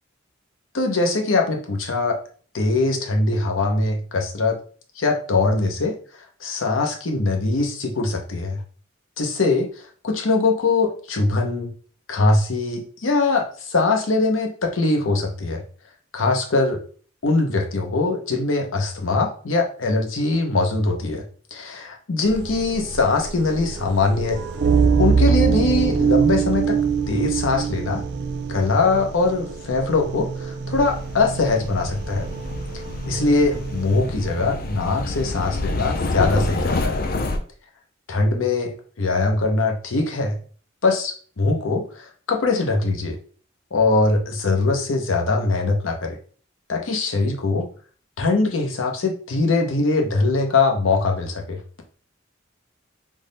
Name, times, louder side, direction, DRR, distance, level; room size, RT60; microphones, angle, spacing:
voice 1, 0.7-2.2 2.5-4.6 5.0-5.9 6.4-8.6 9.2-9.7 10.0-11.7 12.1-15.6 16.1-16.8 17.2-21.2 21.5-24.4 25.0-26.8 27.1-28.0 28.5-32.3 33.1-37.0 38.1-40.4 40.8-43.2 43.7-46.2 46.7-47.7 48.2-51.6, left 3 dB, 85° left, 3 dB, 0.7 m, -22 dB
sound 1, 22.3-35.7, right 6 dB, 55° right, 0.4 m, -24 dB
sound 2, 30.7-37.4, left 2 dB, 45° left, 0.4 m, -28 dB
3.6 x 2.1 x 3.8 m, 0.42 s
head